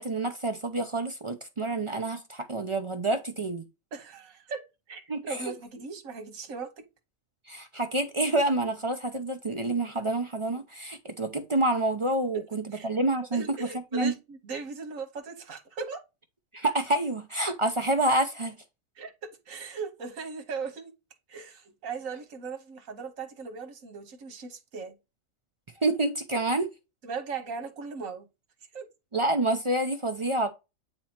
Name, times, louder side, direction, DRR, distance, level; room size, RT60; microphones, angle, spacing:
voice 1, 0.0-3.6 5.1-5.4 7.5-13.5 13.9-14.1 16.5-18.6 25.8-26.7 29.1-30.5, right 2 dB, 40° right, 0.4 m, -28 dB
voice 2, 3.9-6.8 12.3-12.4 12.7-12.9 13.3-16.0 18.9-20.9 21.3-25.0 27.0-28.3 28.7-28.9, right 5 dB, 70° right, 1.6 m, -38 dB
8.9 x 3.0 x 4.3 m
omnidirectional pair, 1.5 m